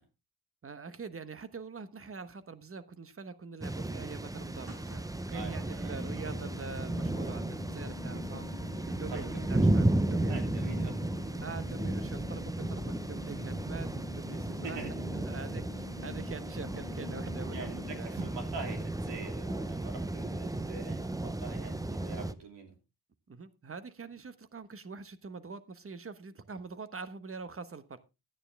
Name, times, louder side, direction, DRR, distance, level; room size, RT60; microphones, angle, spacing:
voice 1, 0.6-8.5 8.9-10.4 11.4-14.8 15.3-18.3 23.3-28.0, right 5 dB, 35° right, 13 dB, 1.1 m, -44 dB
sound 1, 3.6-22.3, right 1 dB, 10° right, 0.6 m, -34 dB
sound 2, 4.6-7.0 7.2-8.8 9.1-9.3 9.5-9.7, right 2 dB, 70° right, 5.9 m, -56 dB
voice 2, 5.3-6.0 9.1-9.4 10.3-10.9 14.6-14.9 17.4-22.7, right 4 dB, 85° right, 4 dB, 3.0 m, -44 dB
sound 3, 6.0-18.0, left 8 dB, 85° left, 1.5 m, -47 dB
11.5 x 9.7 x 3.4 m, 0.27 s
cardioid pair, 80°, 41 cm